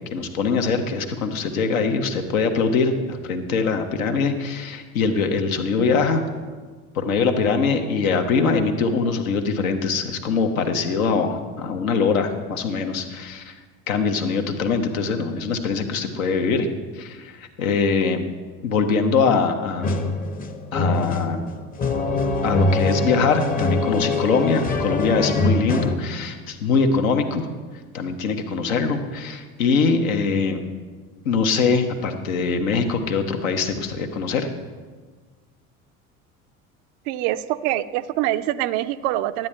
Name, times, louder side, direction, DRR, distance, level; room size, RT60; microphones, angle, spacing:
voice 1, 0.0-6.2 6.9-13.6 13.9-16.7 16.9-18.2 18.6-20.0 20.7-21.4 22.4-27.4 27.9-30.6 31.2-34.5, left 5 dB, 70° left, 6 dB, 1.0 m, -22 dB
sound 1, 19.8-26.0, left 2 dB, 20° left, 0.8 m, -23 dB
voice 2, 37.1-39.5, right 14 dB, 45° right, 14 dB, 0.4 m, -24 dB
12.0 x 8.8 x 3.2 m, 1.4 s
figure-of-eight pair, 70°, 43 cm